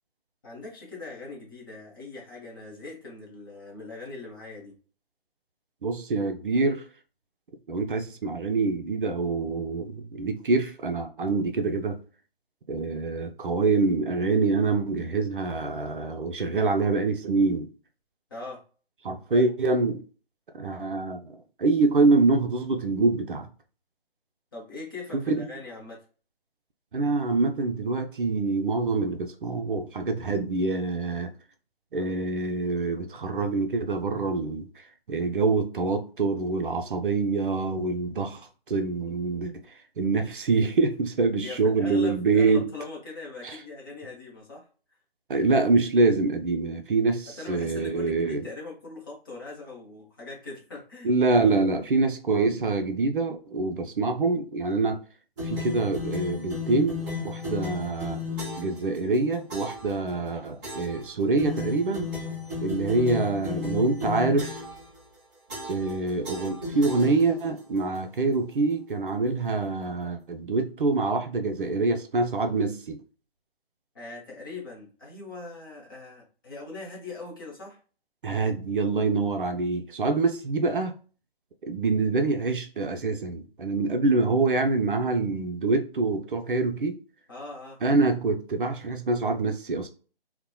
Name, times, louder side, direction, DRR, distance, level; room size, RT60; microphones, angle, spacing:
voice 1, 0.4-4.7 18.3-18.6 19.3-19.4 24.5-26.0 41.4-44.7 47.3-51.1 73.9-77.8 87.3-87.8, left 3 dB, 20° left, 0.7 m, -41 dB
voice 2, 5.8-6.8 7.7-12.0 12.7-17.7 19.0-20.0 20.6-23.5 25.1-25.5 26.9-31.3 31.9-38.4 38.7-39.5 40.0-42.7 43.4-43.6 45.3-48.5 51.0-55.0 55.4-58.2 58.6-62.1 62.6-64.6 65.7-73.0 78.2-80.9 81.6-87.0 87.8-89.9, right 3 dB, 60° right, 0.5 m, -25 dB
sound 1, 55.4-58.8 59.5-59.9 60.6-61.0 61.4-64.8 65.5-65.9 66.2-67.6, left 4 dB, 20° right, 1.0 m, -34 dB
2.8 x 2.1 x 2.2 m
figure-of-eight pair, 145°, 30 cm